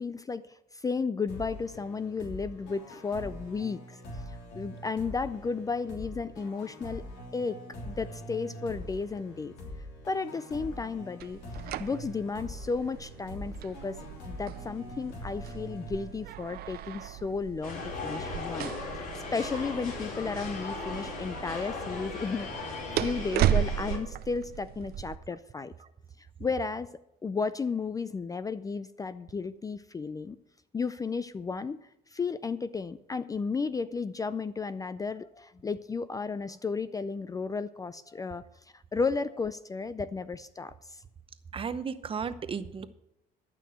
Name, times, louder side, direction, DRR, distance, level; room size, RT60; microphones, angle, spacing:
voice 1, 0.0-4.0 4.3-7.0 7.3-7.6 7.9-9.5 10.1-11.4 11.8-14.0 14.3-18.7 19.3-25.7 26.2-26.9 27.2-30.4 30.7-31.8 32.1-38.4 38.7-41.0, left 4 dB, 20° left, 14 dB, 0.4 m, -33 dB
sound 1, 1.3-16.7, left 1 dB, 90° left, 3.3 m, -44 dB
sound 2, 11.2-25.2, right 12 dB, 65° right, 0.6 m, -35 dB
sound 3, 17.6-24.0, left 3 dB, 55° left, 4.1 m, -38 dB
voice 2, 41.5-42.9, right 6 dB, 30° right, 12 dB, 0.7 m, -34 dB
12.0 x 6.0 x 7.8 m, 0.84 s
cardioid pair, 110°, 17 cm